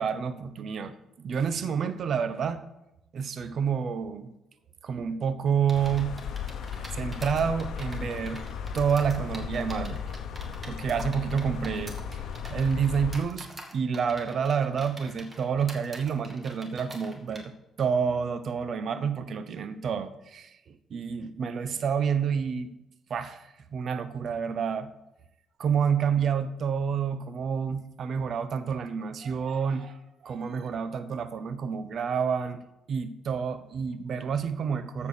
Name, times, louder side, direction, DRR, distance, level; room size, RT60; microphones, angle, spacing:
voice 1, 0.0-2.6 3.1-4.3 4.8-6.1 6.9-8.4 8.7-10.0 10.7-12.2 12.5-17.5 17.8-22.7 23.1-24.9 25.6-35.1, right 6 dB, 60° right, 11 dB, 0.9 m, -29 dB
sound 1, 5.7-13.2, left 7 dB, 75° left, 0.9 m, -36 dB
sound 2, 5.7-17.4, right 1 dB, 25° right, 2.2 m, -46 dB
14.0 x 4.8 x 6.6 m, 0.92 s
cardioid pair, 90°, 0 cm